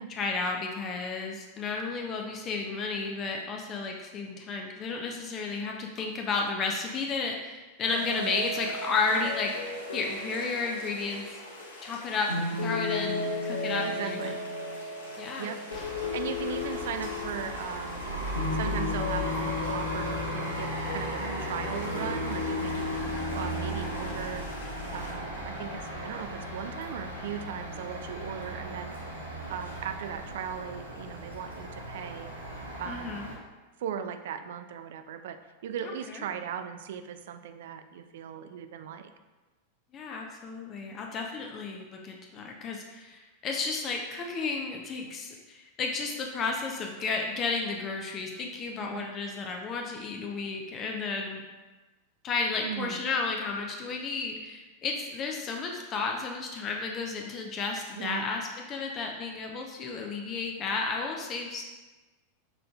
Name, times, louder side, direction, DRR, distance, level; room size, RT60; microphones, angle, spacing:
voice 1, 0.1-9.5 9.9-11.4 11.8-12.3 12.6-14.3 15.2-15.8 32.9-33.3 36.0-36.2 39.9-51.4 52.2-61.6, left 4 dB, 30° left, 1 dB, 0.5 m, -32 dB
sound 1, 7.8-25.1, left 3 dB, 70° left, 0.9 m, -35 dB
voice 2, 13.8-14.4 15.4-18.0 18.5-22.8 23.3-24.4 24.9-28.9 29.5-32.3 32.8-33.2 33.8-35.4 35.6-39.1 48.8-49.1 52.6-53.0 58.0-58.3, right 8 dB, 55° right, 9 dB, 0.3 m, -38 dB
sound 2, 15.7-33.3, right 1 dB, 80° right, 0.8 m, -36 dB
5.8 x 3.7 x 2.3 m, 1.2 s
figure-of-eight pair, 90°, 0 cm